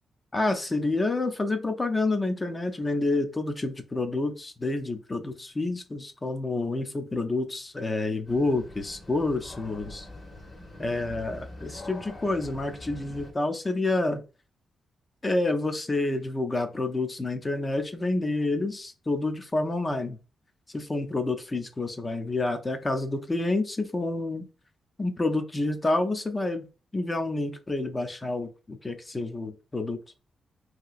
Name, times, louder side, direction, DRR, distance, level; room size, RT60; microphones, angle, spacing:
voice 1, 0.3-10.1 10.8-14.2 15.2-20.2 20.7-24.4 25.0-26.7 26.9-30.0, left 2 dB, 20° left, 7 dB, 0.5 m, -28 dB
sound 1, 8.3-13.3, left 2 dB, 35° left, 0.9 m, -44 dB
2.8 x 2.8 x 2.4 m, 0.32 s
cardioid pair, 125°, 0 cm